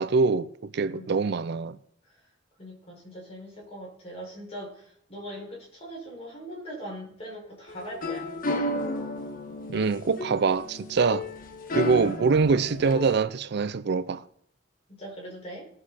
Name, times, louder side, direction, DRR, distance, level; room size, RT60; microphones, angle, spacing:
voice 1, 0.0-1.8 9.7-11.3 11.7-14.2, right 4 dB, 60° right, 0.4 m, -24 dB
voice 2, 0.9-1.2 2.1-2.2 2.6-8.4 15.0-15.7, equal, 30° left, 5.7 m, -41 dB
sound 1, 7.7-13.2, left 1 dB, 45° left, 1.3 m, -32 dB
18.5 x 7.7 x 4.3 m
head